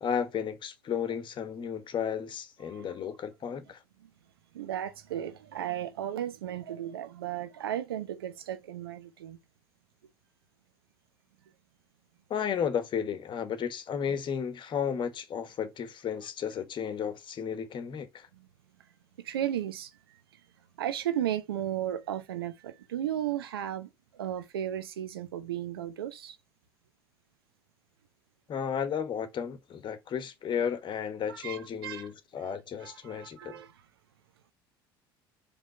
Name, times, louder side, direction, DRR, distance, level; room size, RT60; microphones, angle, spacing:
voice 1, 0.0-3.8 12.3-18.3 28.5-33.6, left 7 dB, 40° left, 1.4 m, -33 dB
voice 2, 4.5-9.4 18.3-18.5 19.2-20.2 20.8-26.4 31.3-32.1 32.4-32.5 32.8-33.7, right 11 dB, 85° right, 0.8 m, -35 dB
5.0 x 3.6 x 5.6 m
hypercardioid pair, 70°, 12 cm